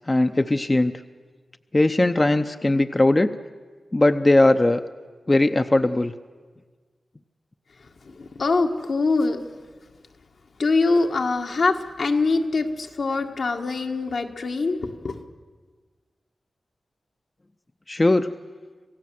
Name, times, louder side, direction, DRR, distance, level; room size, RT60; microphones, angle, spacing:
voice 1, 0.1-0.9 1.7-3.4 3.9-4.8 5.3-6.1 17.9-18.3, left 2 dB, 30° left, 8 dB, 0.7 m, -19 dB
voice 2, 8.0-9.4 10.6-15.2, left 3 dB, 75° left, 3 dB, 1.7 m, -23 dB
27.0 x 16.0 x 7.7 m, 1.5 s
cardioid pair, 60°, 0 cm